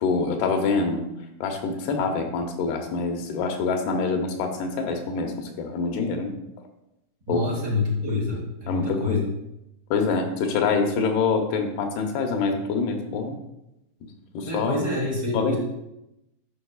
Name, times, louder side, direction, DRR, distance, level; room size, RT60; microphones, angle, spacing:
voice 1, 0.0-1.0 1.4-6.3 7.3-7.5 8.1-8.2 8.7-9.2 9.9-13.4 14.3-14.8 15.3-15.6, left 4 dB, 85° left, 4 dB, 2.9 m, -25 dB
voice 2, 7.3-9.2 14.4-15.6, left 2 dB, 50° right, -4 dB, 1.2 m, -27 dB
13.0 x 5.5 x 2.4 m, 0.88 s
omnidirectional pair, 4.4 m